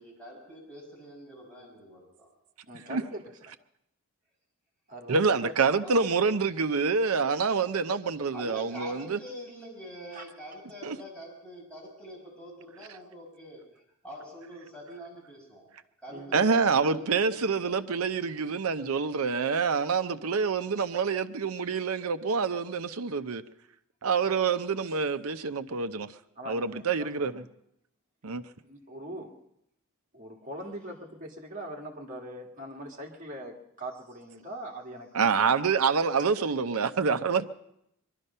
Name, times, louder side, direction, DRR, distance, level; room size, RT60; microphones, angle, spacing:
voice 1, 0.0-2.3 5.8-6.1 8.3-15.7 16.0-17.6, equal, 5° left, 5.9 m, -45 dB
voice 2, 2.7-3.2 4.9-5.5 10.1-10.2 16.1-16.3 24.9-25.0 26.4-27.5 28.7-29.3 30.1-35.5, right 1 dB, 35° right, 1.9 m, -42 dB
voice 3, 5.1-9.2 10.8-11.0 16.3-23.4 24.0-26.1 26.5-27.4 28.2-28.4 35.1-37.5, right 5 dB, 80° right, 0.7 m, -27 dB
22.0 x 12.0 x 5.5 m
head